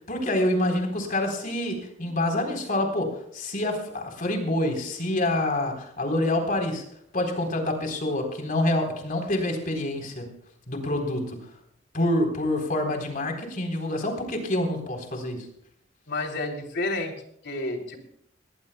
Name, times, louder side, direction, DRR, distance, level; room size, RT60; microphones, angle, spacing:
voice 1, 0.0-6.8 7.1-10.3 10.7-11.4 11.9-15.4, left 1 dB, 45° left, 3 dB, 3.9 m, -27 dB
voice 2, 16.1-17.1 17.4-18.0, left 2 dB, 65° left, 2 dB, 3.3 m, -30 dB
21.0 x 19.0 x 2.3 m, 0.69 s
head